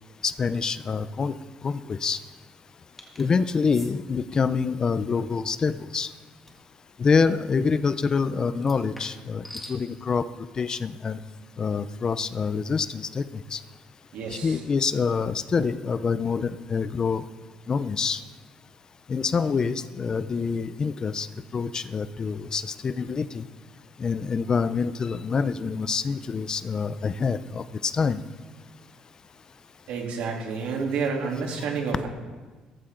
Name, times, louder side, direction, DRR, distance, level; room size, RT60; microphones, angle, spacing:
voice 1, 0.2-1.3 1.6-2.2 3.2-6.1 7.0-10.2 10.6-11.2 11.6-13.6 14.3-17.2 17.7-18.2 19.1-21.3 21.5-23.5 24.0-28.2, left 5 dB, 30° left, 14 dB, 0.6 m, -26 dB
sound 1, 3.0-3.3 3.7-3.9 6.5-6.7 8.6-9.8, left 1 dB, 5° left, 2.0 m, -44 dB
voice 2, 14.1-14.6 29.9-32.1, right 5 dB, 75° right, 0 dB, 3.3 m, -29 dB
17.5 x 14.0 x 3.9 m, 1.4 s
cardioid pair, 120°, 2 cm